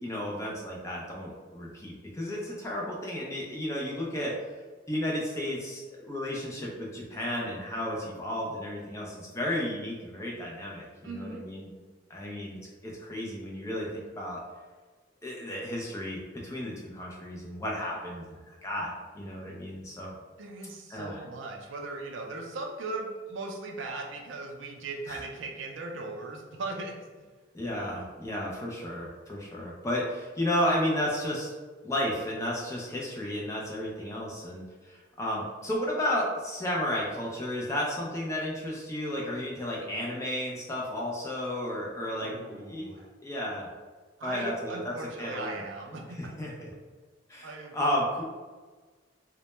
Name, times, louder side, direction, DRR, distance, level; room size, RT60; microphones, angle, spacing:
voice 1, 0.0-4.3 4.9-11.7 12.1-12.6 12.8-13.9 14.2-14.4 15.2-20.2 20.9-21.2 25.1-25.2 27.5-31.5 31.8-42.9 43.2-43.7 44.2-45.6 46.2-46.7 47.3-48.4, left 1 dB, 15° left, -3 dB, 0.3 m, -33 dB
voice 2, 11.0-11.4 20.0-20.1 20.4-27.3 42.1-43.0 44.2-46.2 47.4-47.8, right 3 dB, 75° right, 1 dB, 0.4 m, -38 dB
2.1 x 2.1 x 2.9 m, 1.4 s
head